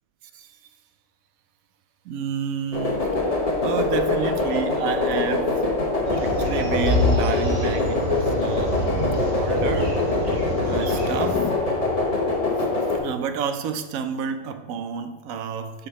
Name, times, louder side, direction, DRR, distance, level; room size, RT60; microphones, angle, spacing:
voice 1, 2.0-3.3 3.6-5.5 6.1-9.0 9.3-9.9 10.6-11.5 12.9-15.9, right 7 dB, 75° right, 9 dB, 1.0 m, -30 dB
sound 1, 2.7-13.0, left 2 dB, 30° left, 0.9 m, -24 dB
sound 2, 5.9-11.6, left 8 dB, 85° left, 1.1 m, -40 dB
sound 3, 6.1-11.4, equal, 50° right, 1.2 m, -27 dB
7.3 x 3.8 x 5.8 m, 1.3 s
omnidirectional pair, 1.5 m